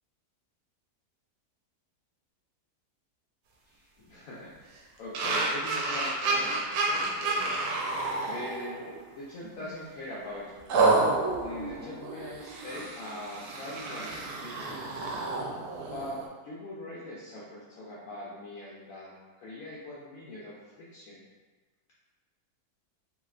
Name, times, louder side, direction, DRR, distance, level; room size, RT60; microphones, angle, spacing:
voice 1, 3.7-4.7 5.0-7.6 8.3-8.8 9.1-10.7 11.4-14.8 15.8-21.2, left 1 dB, 70° left, -7 dB, 1.0 m, -42 dB
sound 1, 5.1-9.0 9.4-9.7 10.7-16.2, right 3 dB, 85° right, 1.1 m, -30 dB
3.1 x 2.8 x 2.4 m, 1.3 s
omnidirectional pair, 1.6 m